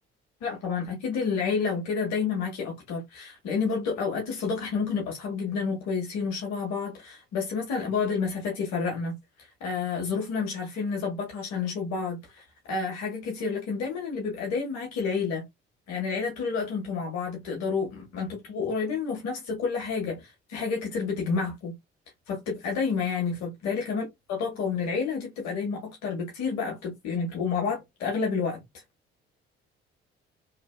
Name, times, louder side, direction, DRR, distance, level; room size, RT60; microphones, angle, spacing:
voice 1, 0.4-9.1 9.6-15.4 15.9-21.7 22.3-28.6, left 5 dB, 60° left, 1.6 m, -30 dB
3.2 x 3.2 x 2.2 m
figure-of-eight pair, 45°, 30 cm